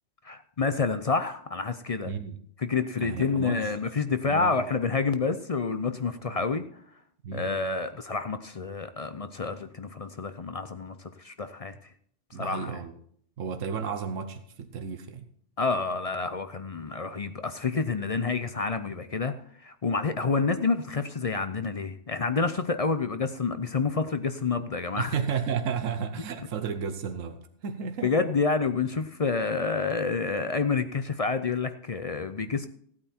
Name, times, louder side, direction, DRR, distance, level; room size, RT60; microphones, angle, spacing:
voice 1, 0.2-2.1 2.6-6.7 7.3-11.7 12.3-12.7 15.6-19.3 19.6-25.1 28.0-32.7, left 4 dB, 40° left, 10 dB, 0.5 m, -28 dB
voice 2, 2.0-2.4 3.0-3.7 4.3-4.6 6.3-6.5 7.2-7.5 12.3-12.9 13.4-15.3 25.0-28.3, right 6 dB, 85° right, 8 dB, 1.3 m, -33 dB
15.5 x 8.7 x 4.3 m, 0.62 s
omnidirectional pair, 1.3 m